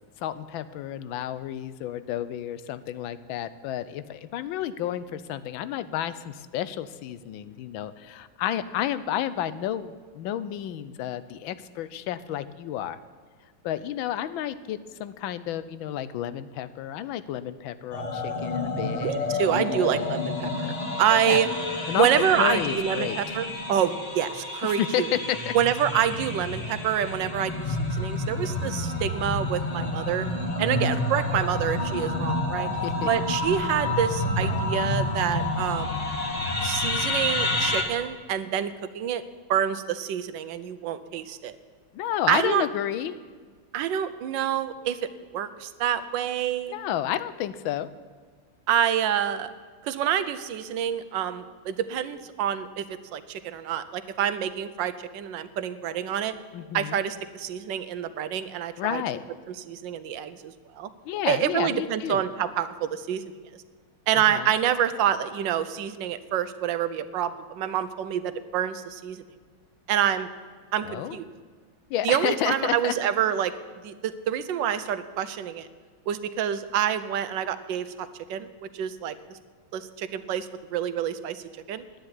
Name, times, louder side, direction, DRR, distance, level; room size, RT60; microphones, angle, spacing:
voice 1, 0.2-13.0 13.6-19.4 19.7-19.9 21.3-21.4 21.9-22.1 22.4-23.4 24.6-25.5 32.7-33.1 41.9-43.2 46.7-47.9 56.5-57.0 58.8-59.2 61.0-62.2 64.1-64.5 70.8-71.2 71.9-72.9, left 11 dB, 75° left, 14 dB, 1.4 m, -31 dB
sound 1, 17.9-37.8, left 2 dB, 20° left, 1.2 m, -29 dB
voice 2, 19.0-21.5 21.9-25.1 25.5-30.3 30.6-32.7 33.1-36.0 36.6-39.2 39.5-41.6 42.3-42.7 43.7-46.8 48.7-49.5 49.8-56.3 56.7-59.0 59.7-60.9 61.2-63.2 64.1-69.2 69.9-70.3 70.7-71.3 72.0-73.5 73.8-75.7 76.1-79.4 79.7-81.4 81.7-81.8, right 9 dB, 70° right, 12 dB, 1.3 m, -27 dB
10.5 x 9.1 x 9.7 m, 1.5 s
omnidirectional pair, 2.3 m